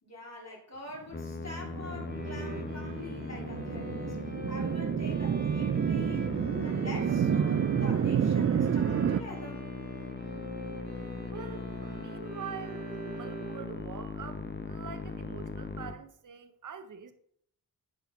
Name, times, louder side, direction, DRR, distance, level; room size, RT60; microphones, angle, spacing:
voice 1, 0.0-4.2 4.5-6.3 6.6-9.7, left 2 dB, 45° left, 3.6 m, -45 dB
Musical instrument, 1.1-15.9, left 4 dB, 30° left, 0.9 m, -40 dB
sound 1, 1.5-9.2, right 8 dB, 40° right, 0.5 m, -29 dB
Bowed string instrument, 2.1-13.9, right 1 dB, 25° right, 2.0 m, -46 dB
voice 2, 11.3-17.1, right 7 dB, 55° right, 0.9 m, -45 dB
10.5 x 4.0 x 5.4 m
cardioid pair, 60°, 36 cm